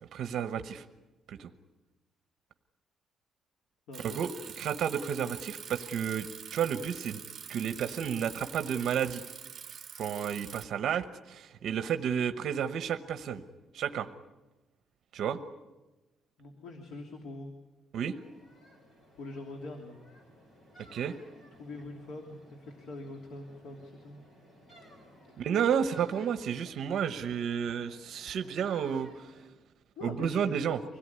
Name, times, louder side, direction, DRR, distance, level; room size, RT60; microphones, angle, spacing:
voice 1, 0.1-0.8 1.3-1.5 4.0-6.3 6.5-7.2 7.5-9.2 10.0-13.4 13.7-14.1 15.1-15.4 17.9-18.2 20.9-21.1 25.4-29.3 30.0-30.8, right 8 dB, 60° right, 9 dB, 1.0 m, -31 dB
voice 2, 3.9-4.2 16.4-17.5 19.1-20.0 21.6-24.2 25.3-25.5 30.0-30.6, left 2 dB, 90° left, 3 dB, 2.9 m, -44 dB
Bicycle, 3.9-10.6, right 7 dB, 35° right, 1.7 m, -45 dB
sound 1, 18.1-29.5, equal, 35° left, 6.5 m, -57 dB
25.0 x 17.5 x 9.7 m, 1.1 s
cardioid pair, 175°, 0 cm